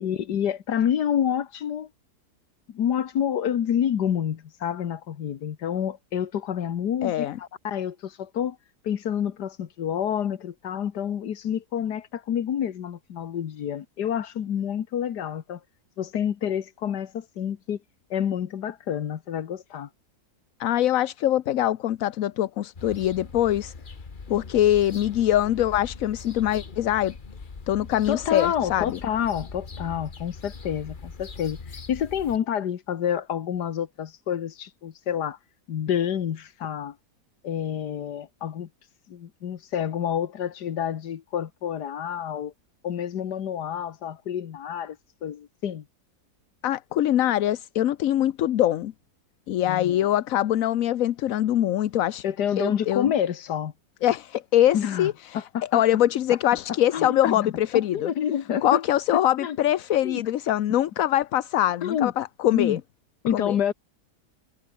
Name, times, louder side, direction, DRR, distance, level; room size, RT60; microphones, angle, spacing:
voice 1, 0.0-1.9 2.7-8.6 8.8-15.6 16.0-17.8 18.1-19.9 28.1-35.4 35.7-37.0 37.4-38.7 39.1-42.5 42.8-45.8 49.6-50.0 52.2-53.7 54.7-55.8 56.9-58.8 59.1-59.6 60.0-60.2 61.8-62.1 62.5-62.8 63.2-63.7, left 9 dB, 90° left, 1.8 m, -28 dB
voice 2, 7.0-7.4 20.6-23.7 24.3-27.1 27.7-29.0 46.6-48.9 49.5-52.2 52.6-53.1 54.0-55.4 55.7-58.1 58.6-62.8 63.3-63.6, left 12 dB, 65° left, 1.0 m, -23 dB
sound 1, 22.8-32.4, left 4 dB, 30° left, 1.5 m, -41 dB
omnidirectional pair, 1.7 m